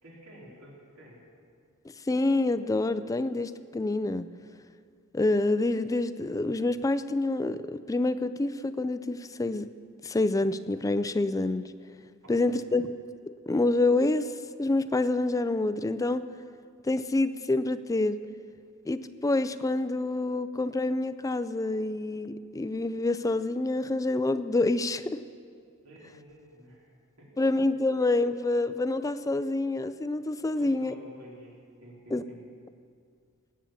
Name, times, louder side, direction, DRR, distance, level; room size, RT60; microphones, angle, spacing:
voice 1, 0.0-1.2 12.2-12.6 25.8-26.9 27.2-27.3 30.5-32.4, equal, 85° right, -4 dB, 4.0 m, -50 dB
voice 2, 2.1-4.3 5.1-9.7 10.0-11.7 12.3-12.9 13.2-14.3 14.6-16.2 16.8-18.2 18.9-25.2 27.4-30.9 32.1-32.2, left 2 dB, 15° left, 13 dB, 0.4 m, -27 dB
19.0 x 8.3 x 7.2 m, 2.2 s
head